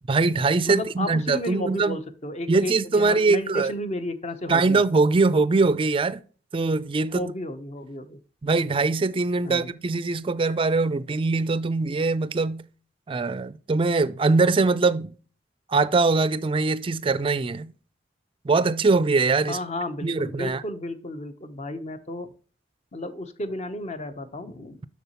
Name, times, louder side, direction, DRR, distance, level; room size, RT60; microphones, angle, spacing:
voice 1, 0.1-2.0 2.5-3.7 4.5-6.2 6.5-7.3 8.4-12.7 13.1-15.1 15.7-17.7 18.4-19.6 20.0-20.6, right 3 dB, 30° right, 0.4 m, -22 dB
voice 2, 0.7-4.8 7.1-8.2 9.4-9.7 19.5-22.3 22.9-24.8, left 1 dB, 40° left, 0.8 m, -33 dB
6.9 x 6.4 x 3.0 m
head